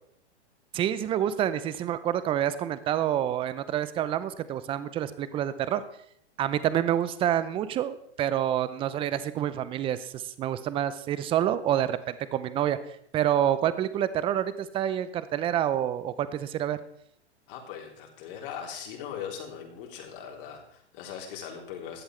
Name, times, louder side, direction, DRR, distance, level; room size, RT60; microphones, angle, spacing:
voice 1, 0.7-5.8 6.4-12.8 13.1-16.8, right 11 dB, 15° right, 15 dB, 0.5 m, -28 dB
voice 2, 17.5-22.0, left 8 dB, 50° left, 1 dB, 3.5 m, -40 dB
16.0 x 11.0 x 3.3 m, 0.71 s
hypercardioid pair, 125°, 35 cm